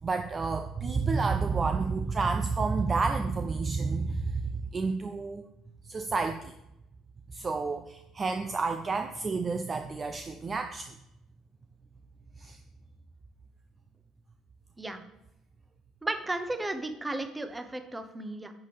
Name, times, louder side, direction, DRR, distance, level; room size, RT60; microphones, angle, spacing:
voice 1, 0.0-5.5 5.8-6.5 7.3-10.9 12.4-12.6, right 4 dB, 30° right, 6 dB, 0.5 m, -30 dB
voice 2, 16.0-18.5, right 2 dB, 15° right, 9 dB, 1.0 m, -34 dB
10.5 x 6.8 x 3.5 m, 0.88 s
figure-of-eight pair, 55°, 0 cm